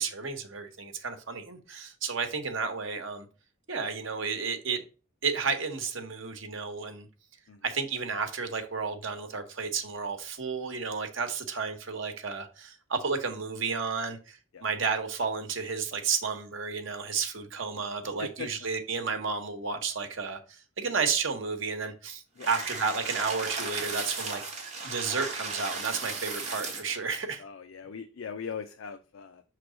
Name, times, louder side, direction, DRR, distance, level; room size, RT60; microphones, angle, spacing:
voice 1, 0.0-3.3 3.7-4.8 5.2-7.1 7.6-27.4, right 5 dB, 70° right, 1.1 m, -32 dB
voice 2, 18.2-18.5 22.4-22.5 27.4-29.4, left 6 dB, 80° left, 0.5 m, -40 dB
sound 1, 22.4-27.0, right 3 dB, 35° right, 1.5 m, -35 dB
6.0 x 3.2 x 5.0 m
head